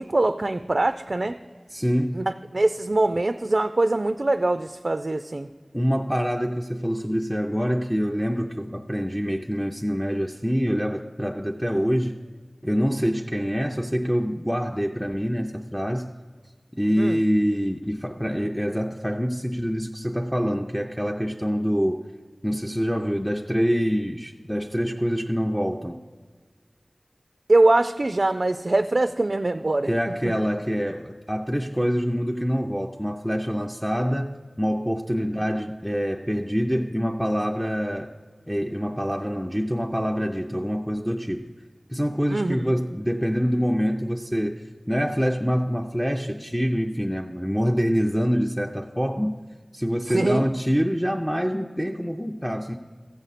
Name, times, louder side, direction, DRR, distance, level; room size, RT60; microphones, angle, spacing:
voice 1, 0.0-1.4 2.1-5.5 17.0-17.2 27.5-29.9 42.3-42.8 50.1-50.5, right 2 dB, 60° right, 9 dB, 0.3 m, -23 dB
voice 2, 1.7-2.3 5.7-12.2 12.6-16.1 16.7-22.0 22.4-26.0 29.9-38.1 38.5-41.5 41.9-49.3 49.7-52.8, equal, ahead, 1 dB, 0.5 m, -25 dB
15.0 x 7.9 x 4.1 m, 1.5 s
wide cardioid pair, 50°, 0 cm